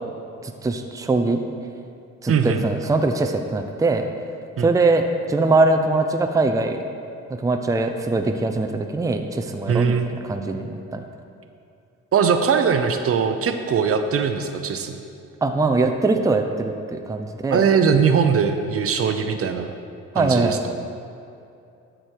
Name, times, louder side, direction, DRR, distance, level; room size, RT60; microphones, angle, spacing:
voice 1, 0.4-1.4 2.2-4.1 4.6-6.8 7.3-11.0 15.4-17.6 20.1-20.6, right 3 dB, 10° right, 5 dB, 0.6 m, -22 dB
voice 2, 2.3-2.7 4.6-4.7 9.7-10.1 12.1-15.0 17.5-19.7 20.2-20.6, right 6 dB, 50° right, 7 dB, 0.7 m, -20 dB
12.5 x 5.1 x 4.6 m, 2.6 s
cardioid pair, 90°, 30 cm